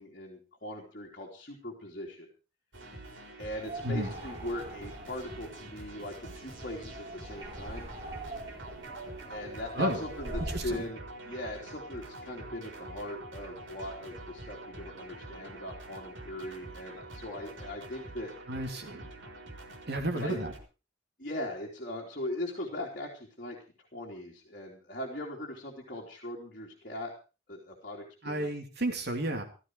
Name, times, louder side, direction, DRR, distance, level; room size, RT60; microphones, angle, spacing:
voice 1, 0.0-2.3 3.4-7.9 9.3-18.3 20.1-20.4 21.2-23.6 23.9-27.1 27.5-28.5, left 1 dB, 50° left, -3 dB, 3.4 m, -40 dB
sound 1, 2.7-20.6, right 2 dB, 85° right, 4.4 m, -46 dB
Vocal Wind Reversed, 3.6-10.9, right 1 dB, 35° right, 2.8 m, -43 dB
voice 2, 18.5-19.1 19.9-20.5 28.2-29.4, right 1 dB, 60° right, 4 dB, 3.0 m, -32 dB
16.0 x 14.0 x 4.7 m, 0.34 s
head